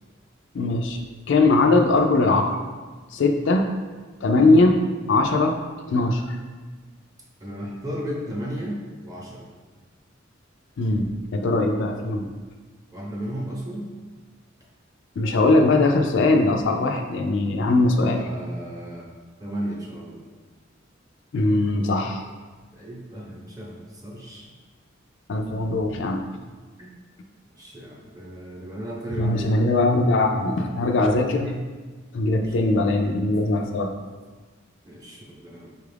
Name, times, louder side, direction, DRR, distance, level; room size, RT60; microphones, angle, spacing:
voice 1, 0.5-1.0 1.3-2.6 3.1-3.7 4.2-4.8 5.1-5.6 5.9-6.4 10.8-12.3 15.2-18.2 21.3-22.2 25.3-26.3 29.2-31.5 32.1-33.9, left 2 dB, 65° left, 4 dB, 0.4 m, -20 dB
voice 2, 7.4-9.5 12.9-13.9 18.0-19.1 19.4-20.2 22.7-24.5 26.8-26.9 27.5-29.6 32.2-33.1 34.8-35.7, equal, 20° right, -4 dB, 0.8 m, -34 dB
5.3 x 2.4 x 3.3 m, 1.4 s
head